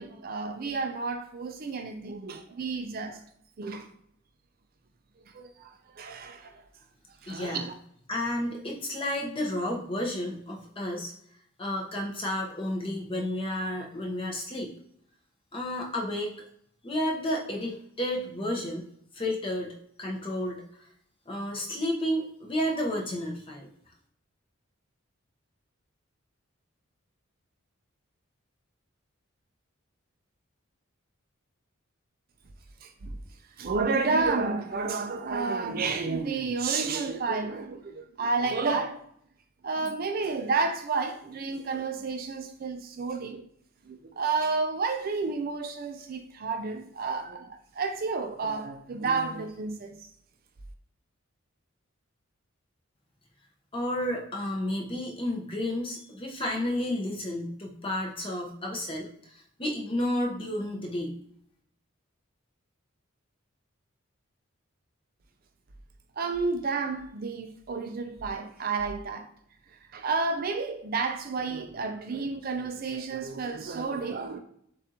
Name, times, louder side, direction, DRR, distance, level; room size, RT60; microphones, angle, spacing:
voice 1, 0.0-3.2 3.6-3.9 5.3-6.6 7.2-7.7 32.8-33.2 33.6-39.0 39.6-43.4 43.9-50.0 66.2-69.3 69.9-74.4, right 4 dB, 45° right, 0.4 m, -31 dB
voice 2, 7.3-7.7 8.1-11.1 11.6-14.7 15.5-16.4 16.8-18.8 19.1-19.7 20.0-20.9 21.3-23.7 53.7-61.2, left 1 dB, 25° left, 0.9 m, -31 dB
6.8 x 2.5 x 2.8 m
head